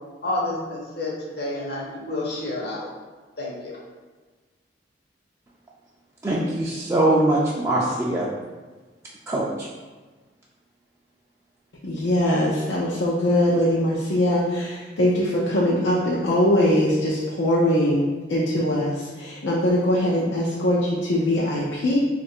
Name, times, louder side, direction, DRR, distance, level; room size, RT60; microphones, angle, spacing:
voice 1, 0.2-2.9 3.4-3.8, left 2 dB, 65° left, -3 dB, 0.9 m, -29 dB
voice 2, 6.2-8.3 9.3-9.7, right 1 dB, 15° right, -5 dB, 0.3 m, -22 dB
voice 3, 11.8-22.0, left 1 dB, 85° left, -6 dB, 0.6 m, -22 dB
3.1 x 2.5 x 4.3 m, 1.3 s
head